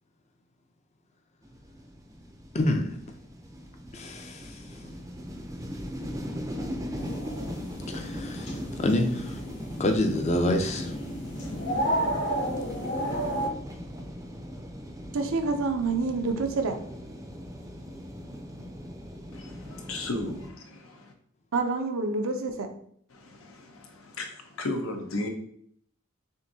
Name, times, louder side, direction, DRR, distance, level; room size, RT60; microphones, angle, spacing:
sound 1, 1.4-20.5, equal, 15° right, 0.5 m, -40 dB
voice 1, 2.5-3.0 3.9-4.7 7.9-9.4 9.8-10.9, left 1 dB, 35° left, 0.5 m, -27 dB
sound 2, 6.9-13.5, equal, 60° left, 1.9 m, -32 dB
voice 2, 15.1-16.8 21.5-22.7, right 3 dB, 80° right, 0.6 m, -27 dB
voice 3, 19.3-21.1 23.1-25.3, left 2 dB, 85° left, 0.8 m, -35 dB
6.3 x 2.6 x 2.7 m
head